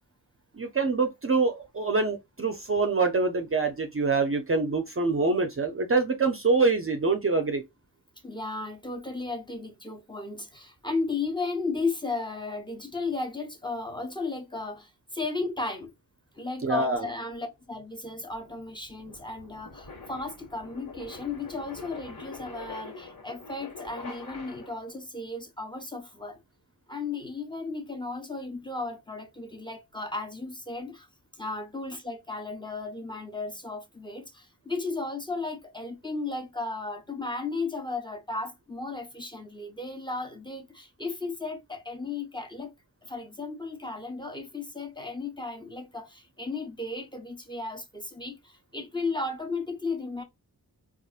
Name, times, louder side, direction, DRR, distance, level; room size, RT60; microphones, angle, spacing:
voice 1, 0.5-7.6 16.6-17.1, right 3 dB, 35° right, 0.5 m, -25 dB
voice 2, 8.2-15.9 16.4-26.4 26.9-31.1 31.4-42.7 43.0-50.2, left 3 dB, 10° left, 0.9 m, -35 dB
sound 1, 17.4-25.0, left 3 dB, 55° left, 1.6 m, -45 dB
4.1 x 2.4 x 2.3 m
wide cardioid pair, 100°, 39 cm